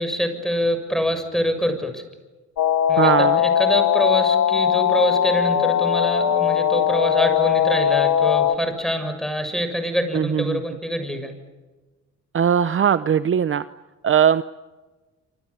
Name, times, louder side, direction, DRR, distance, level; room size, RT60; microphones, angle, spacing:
voice 1, 0.0-2.0 2.9-11.3, equal, ahead, 7 dB, 6.7 m, -25 dB
sound 1, 2.6-8.6, left 9 dB, 70° left, 1.9 m, -19 dB
voice 2, 3.0-3.4 10.1-10.6 12.3-13.6 14.0-14.4, right 8 dB, 45° right, 13 dB, 0.8 m, -19 dB
27.5 x 27.5 x 7.1 m, 1.2 s
cardioid pair, 90°, 30 cm